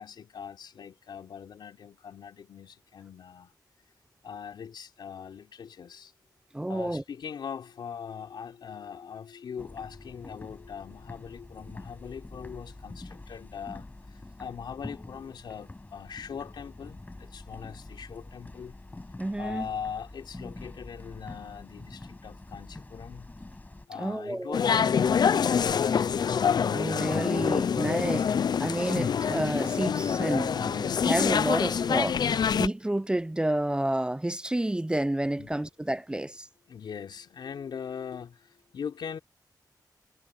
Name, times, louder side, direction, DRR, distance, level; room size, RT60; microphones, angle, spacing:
voice 1, 0.0-3.5 4.2-6.1 6.7-23.3 23.9-26.2 28.0-28.8 35.4-35.5 36.7-39.2, left 7 dB, 85° left, 3.5 m, -41 dB
voice 2, 6.5-7.0 19.2-19.7 24.0-24.6 26.7-28.3 28.6-32.2 32.5-36.5, right 1 dB, 10° right, 0.6 m, -30 dB
sound 1, 9.6-23.9, left 2 dB, 20° left, 7.9 m, -46 dB
sound 2, 24.5-32.7, left 7 dB, 70° left, 0.5 m, -26 dB
wide cardioid pair, 85°, 8 cm